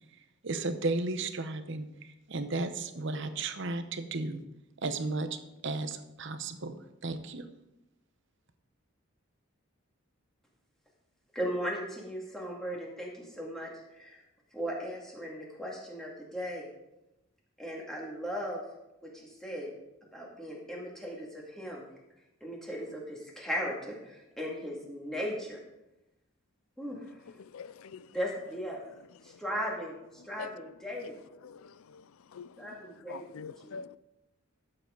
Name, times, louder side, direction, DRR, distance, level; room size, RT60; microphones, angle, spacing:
voice 1, 0.4-1.9 2.3-4.4 4.8-5.3 5.6-6.7 7.0-7.5, right 3 dB, 60° right, 0.9 m, -34 dB
voice 2, 11.3-14.2 14.5-16.6 17.6-18.6 19.0-19.7 20.1-21.9 22.4-25.6 26.8-27.0 28.1-28.8 29.2-31.2 32.6-33.7, equal, ahead, 2.3 m, -37 dB
voice 3, 27.4-28.1 29.2-29.4 30.4-30.7 31.4-32.0 32.3-32.6 33.1-34.0, left 5 dB, 75° left, 0.4 m, -45 dB
13.5 x 7.9 x 3.9 m
head